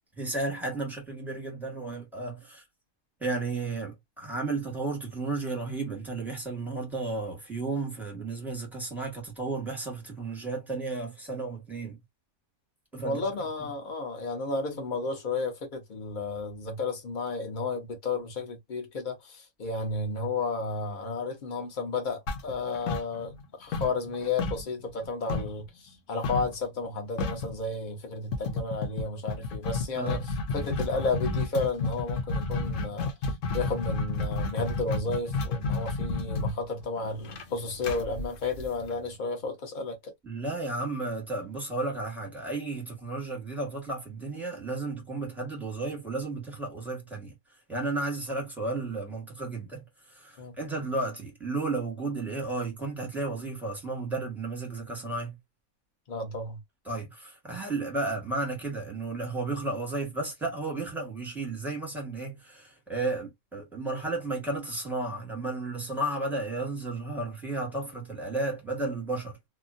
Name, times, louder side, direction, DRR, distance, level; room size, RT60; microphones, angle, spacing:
voice 1, 0.1-2.6 3.2-12.0 12.9-13.2 29.9-30.2 40.2-47.3 47.7-55.4 56.8-69.4, right 2 dB, ahead, 1.4 m, -33 dB
voice 2, 13.0-23.3 23.6-30.2 30.5-33.1 33.5-40.1 50.4-50.5 56.1-56.6, left 3 dB, 35° left, 1.1 m, -32 dB
sound 1, 22.3-23.5 23.7-25.6 26.2-26.5 26.8-26.9 27.2-27.5 28.3-39.1, left 3 dB, 65° left, 1.1 m, -31 dB
2.9 x 2.4 x 2.5 m
omnidirectional pair, 1.5 m